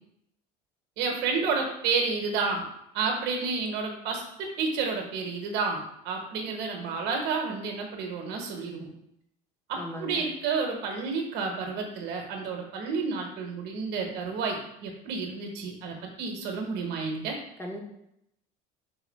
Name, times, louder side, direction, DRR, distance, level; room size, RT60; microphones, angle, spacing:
voice 1, 1.0-2.7 2.9-8.9 9.7-17.4, right 4 dB, 65° right, 2 dB, 1.0 m, -30 dB
voice 2, 9.8-10.2 17.6-17.8, equal, 10° left, 0 dB, 1.0 m, -37 dB
3.8 x 2.8 x 4.0 m, 0.77 s
supercardioid pair, 100°, 19 cm